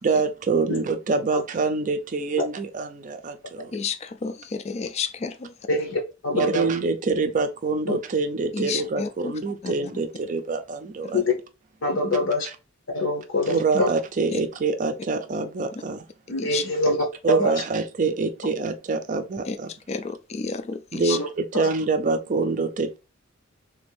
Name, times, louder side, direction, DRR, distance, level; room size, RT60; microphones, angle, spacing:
voice 1, 0.0-3.7 6.3-11.2 13.5-16.0 17.2-19.7 20.9-23.0, right 4 dB, 40° right, 0.4 m, -25 dB
voice 2, 3.7-5.5 8.5-9.3 9.6-9.7 11.0-11.2 14.3-14.4 16.4-16.6 19.5-19.6 19.9-21.2, left 5 dB, 35° left, 0.3 m, -31 dB
voice 3, 5.7-6.7 7.9-8.0 11.1-11.3 11.8-12.5 12.9-13.9 16.3-17.0 17.3-17.6 21.1-21.3 21.5-21.7, left 1 dB, 70° left, 0.8 m, -24 dB
3.4 x 2.5 x 3.2 m
head